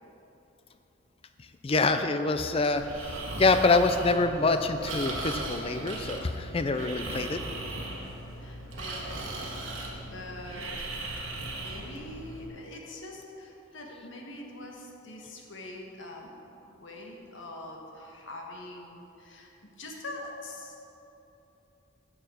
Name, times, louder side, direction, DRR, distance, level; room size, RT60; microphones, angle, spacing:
voice 1, 1.6-7.4, left 3 dB, 30° left, 8 dB, 0.4 m, -26 dB
Breathing, 2.8-12.5, right 2 dB, 85° right, 1.4 m, -38 dB
voice 2, 8.4-9.8 10.1-10.9 11.5-16.3 16.6-20.9, left 1 dB, 70° left, 0 dB, 1.3 m, -44 dB
7.9 x 6.7 x 6.2 m, 3.0 s
head